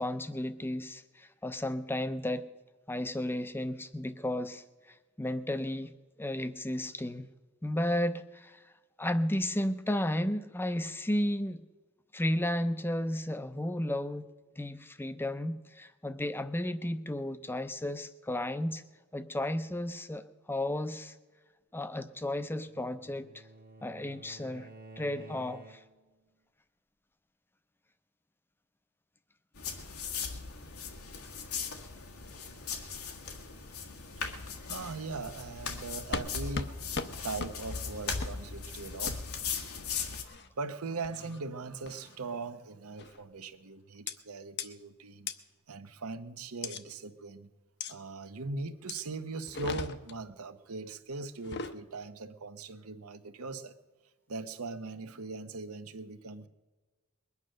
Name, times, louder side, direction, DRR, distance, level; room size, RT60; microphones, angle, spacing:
voice 1, 0.0-2.5 2.9-7.3 7.6-8.6 9.0-11.6 12.1-14.3 14.6-18.8 19.1-21.1 21.7-23.5 23.8-24.7 25.0-25.8, left 1 dB, 10° left, 11 dB, 0.6 m, -33 dB
Bowed string instrument, 22.2-26.1, right 2 dB, 45° right, 1.2 m, -52 dB
sound 1, 29.6-40.2, left 5 dB, 90° left, 1.8 m, -38 dB
voice 2, 34.7-36.9 37.2-39.7 40.2-45.3 45.7-47.5 47.9-53.7 54.3-56.5, right 3 dB, 85° right, 10 dB, 1.0 m, -40 dB
sound 2, 36.1-36.3 36.5-36.7 36.9-37.1 37.4-37.5 38.2-38.3 39.1-39.2 40.1-40.5 41.0-41.4 41.9-42.2 43.0-43.2 44.1-44.2 44.6-44.7 45.3-45.4 46.6-46.8 47.8-47.9 48.9-49.0 49.4-50.2 51.3-51.8, left 4 dB, 50° left, 0.8 m, -37 dB
21.5 x 9.6 x 6.5 m, 1.3 s
head